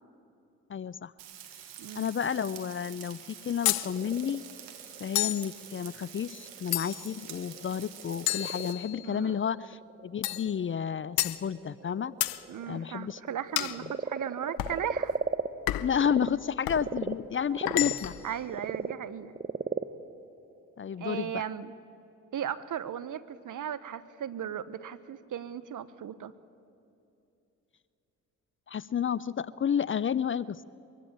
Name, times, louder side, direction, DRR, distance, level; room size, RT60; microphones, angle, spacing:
voice 1, 0.7-1.1 2.0-4.4 5.0-12.1 12.7-13.2 15.8-18.2 20.8-21.3 28.7-30.6, left 8 dB, 35° left, 20 dB, 0.5 m, -31 dB
Frying (food), 1.2-8.7, right 9 dB, 85° right, 1.9 m, -47 dB
Frog, 3.4-16.3 16.7-21.3, right 4 dB, 25° right, 1.1 m, -38 dB
sound 1, 3.7-3.9 5.2-5.5 6.7-7.2 8.3-9.2 10.2-10.5 11.2-11.4 12.2-12.4 13.6-13.8 14.6-14.8 15.7-16.0 16.7-16.9 17.7-18.3, left 14 dB, 70° left, 0.8 m, -30 dB
voice 2, 9.0-9.4 12.5-15.2 18.2-19.3 21.0-21.7 22.3-26.3, right 9 dB, 55° right, 15 dB, 1.1 m, -36 dB
23.0 x 16.0 x 8.7 m, 2.8 s
hypercardioid pair, 50°, 37 cm